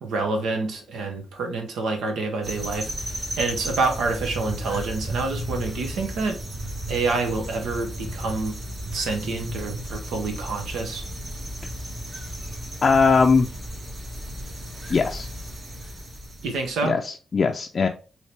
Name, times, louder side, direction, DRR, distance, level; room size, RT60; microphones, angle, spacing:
voice 1, 0.0-6.4 6.9-8.6 8.9-11.1 16.4-17.0, right 3 dB, 90° right, 0.9 m, -27 dB
sound 1, 2.4-16.8, equal, 50° right, 1.8 m, -34 dB
voice 2, 12.8-13.5 14.9-15.3 16.8-17.9, left 5 dB, 50° left, 0.4 m, -20 dB
4.3 x 2.8 x 3.2 m
cardioid pair, 70°, 0 cm